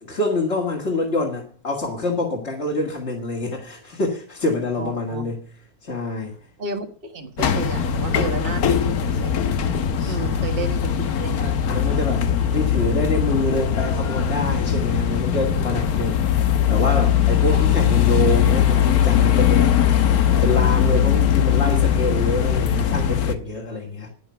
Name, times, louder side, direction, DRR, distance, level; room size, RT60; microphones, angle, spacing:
voice 1, 0.0-5.4 5.8-6.4 10.0-10.4 11.4-19.7 20.4-24.1, left 2 dB, 50° left, 2.6 m, -26 dB
voice 2, 4.8-5.3 6.6-9.8 10.1-11.6 12.4-12.6 17.5-17.6, right 3 dB, 40° right, 1.6 m, -32 dB
sound 1, 7.4-23.4, left 9 dB, 90° left, 1.5 m, -20 dB
11.0 x 10.5 x 5.9 m
omnidirectional pair, 1.5 m